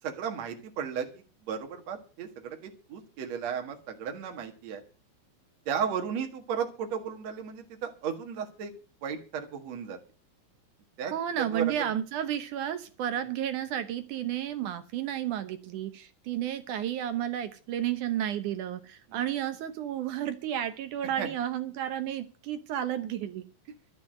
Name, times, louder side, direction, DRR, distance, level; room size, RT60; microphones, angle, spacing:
voice 1, 0.0-4.8 5.7-8.7 9.0-10.0 11.0-11.9 13.2-13.3 19.1-19.3 21.2-21.3, right 7 dB, 55° right, 4 dB, 2.5 m, -35 dB
voice 2, 11.1-23.4, right 10 dB, 70° right, 10 dB, 2.1 m, -32 dB
13.0 x 8.1 x 7.6 m, 0.37 s
omnidirectional pair, 4.2 m